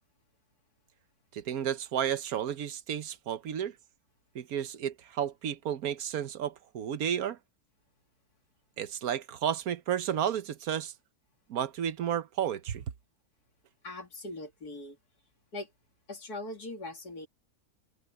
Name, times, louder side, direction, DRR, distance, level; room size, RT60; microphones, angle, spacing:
voice 1, 1.3-3.7 4.3-7.4 8.8-10.9 11.5-12.8, right 9 dB, 75° right, 1.3 m, -32 dB
voice 2, 13.8-15.0 15.5-15.7 16.1-17.3, left 2 dB, 85° left, 3.6 m, -41 dB
omnidirectional pair, 1.6 m